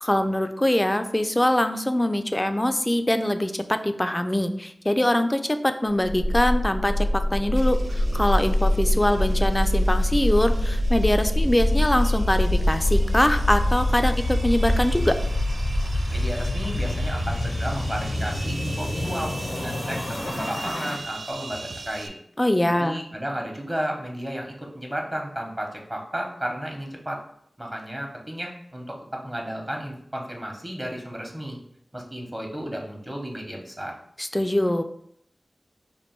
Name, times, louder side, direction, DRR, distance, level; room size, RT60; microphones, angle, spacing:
voice 1, 0.0-15.1 22.4-23.0 34.2-34.8, left 1 dB, 20° left, 8 dB, 0.3 m, -23 dB
sound 1, 6.0-21.0, left 1 dB, 90° left, 0.6 m, -24 dB
sound 2, 7.6-22.1, right 3 dB, 70° right, 0.3 m, -42 dB
sound 3, 7.6-20.4, left 1 dB, 85° right, 1.2 m, -45 dB
voice 2, 16.1-22.1 22.8-27.2 27.6-31.6 31.9-33.9, equal, 25° right, 1 dB, 0.9 m, -33 dB
3.1 x 2.6 x 4.4 m, 0.70 s
wide cardioid pair, 50°, 0 cm